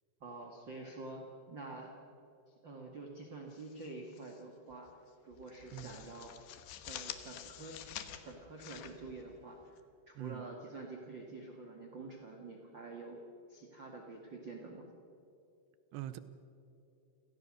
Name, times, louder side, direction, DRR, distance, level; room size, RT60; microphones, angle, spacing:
voice 1, 0.2-1.9 2.5-4.9 5.2-6.3 6.8-7.8 8.2-9.8 10.1-13.2 13.5-14.9, right 3 dB, 45° right, 1 dB, 1.5 m, -47 dB
Turning Page in Packet, 3.5-4.4 4.7-4.9 5.3-9.8, left 11 dB, 70° left, 3.1 m, -48 dB
voice 2, 5.7-6.0 10.2-10.5 15.9-16.2, right 13 dB, 80° right, 13 dB, 2.8 m, -43 dB
29.5 x 18.0 x 6.5 m, 2.7 s
omnidirectional pair, 5.3 m